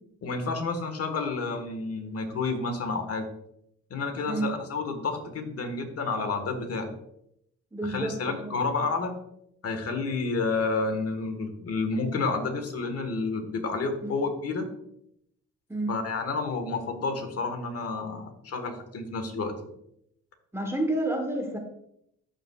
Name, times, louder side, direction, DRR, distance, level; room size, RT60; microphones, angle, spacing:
voice 1, 0.2-3.3 3.9-6.9 7.8-9.1 9.6-14.7 15.9-19.7, left 3 dB, 50° left, 6 dB, 1.6 m, -30 dB
voice 2, 7.7-8.5 14.0-14.1 15.7-16.0 20.5-21.6, right 1 dB, 10° right, 3 dB, 1.2 m, -29 dB
13.5 x 5.7 x 2.4 m, 0.75 s
cardioid pair, 90°, 30 cm